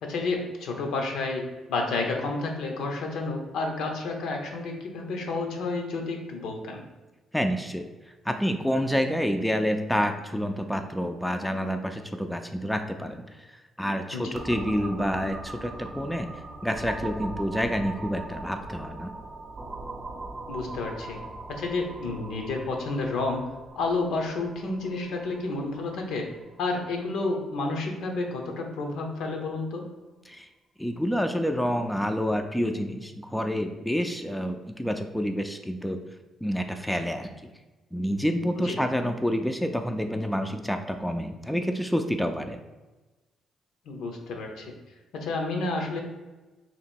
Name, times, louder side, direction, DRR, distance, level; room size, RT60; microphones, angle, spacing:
voice 1, 0.0-6.8 14.1-14.3 20.5-21.2 21.5-23.4 23.8-26.3 26.6-29.9 38.6-38.8 43.9-44.7 45.1-46.0, left 3 dB, 80° left, 2 dB, 0.7 m, -30 dB
voice 2, 7.3-7.9 8.3-13.5 13.8-16.3 16.6-19.1 30.3-30.5 30.8-36.0 36.4-37.3 37.9-42.6, equal, 5° left, 5 dB, 0.3 m, -28 dB
sound 1, 14.3-27.9, right 2 dB, 40° right, 0.6 m, -40 dB
2.9 x 2.9 x 4.4 m, 1.2 s
cardioid pair, 90°, 0 cm